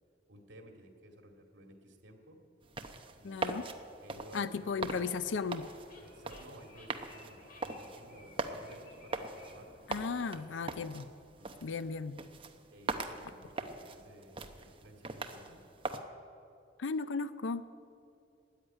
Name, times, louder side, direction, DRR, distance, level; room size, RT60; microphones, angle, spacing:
voice 1, 0.3-2.4 3.2-3.6 4.0-5.0 6.0-9.7 10.0-10.8 11.4-11.8 12.7-15.7, right 1 dB, 80° right, 3 dB, 2.2 m, -55 dB
sound 1, 2.6-16.0, right 3 dB, 30° right, 0.8 m, -42 dB
voice 2, 3.2-3.6 4.3-5.7 9.9-11.0 11.6-12.2 16.8-17.8, left 5 dB, 90° left, 14 dB, 0.5 m, -35 dB
sound 2, 4.8-10.0, left 2 dB, 50° left, 2.2 m, -56 dB
13.5 x 9.4 x 9.7 m, 2.6 s
head